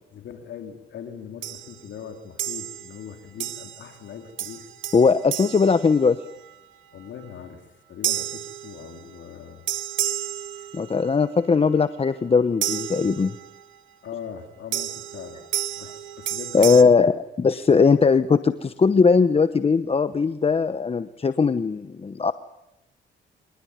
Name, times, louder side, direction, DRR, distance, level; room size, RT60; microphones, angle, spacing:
voice 1, 0.1-4.7 6.9-7.6 7.9-9.6 10.6-10.7 14.0-15.4 15.7-15.9 16.2-16.8, left 7 dB, 70° left, 5 dB, 3.2 m, -40 dB
sound 1, 1.4-1.8 2.4-3.0 3.4-4.0 4.4-6.5 8.0-9.2 9.7-11.1 12.6-13.6 14.7-16.8, right 11 dB, 75° right, 1.6 m, -31 dB
voice 2, 4.9-6.2 10.7-13.3 16.5-22.3, left 5 dB, 30° left, 12 dB, 1.0 m, -19 dB
24.5 x 20.0 x 9.7 m, 0.92 s
cardioid pair, 90°, 20 cm